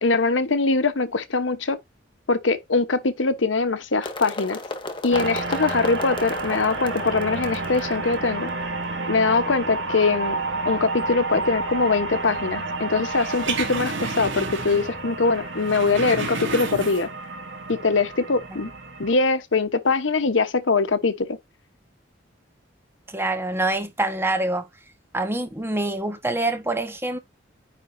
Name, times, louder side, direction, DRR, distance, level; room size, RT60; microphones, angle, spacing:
voice 1, 0.0-1.8 2.3-4.6 5.0-8.5 9.1-10.4 10.6-17.1 17.7-18.7 19.0-21.4, left 3 dB, 80° left, 1.0 m, -22 dB
sound 1, 4.0-9.9, left 2 dB, 25° left, 1.6 m, -35 dB
sound 2, 5.1-19.1, right 3 dB, 65° right, 2.1 m, -31 dB
sound 3, 13.0-15.0 15.3-17.3 17.6-17.7, right 4 dB, 90° right, 2.5 m, -32 dB
voice 2, 23.1-24.7 25.1-27.2, right 2 dB, 10° right, 1.4 m, -25 dB
9.8 x 4.1 x 2.6 m
head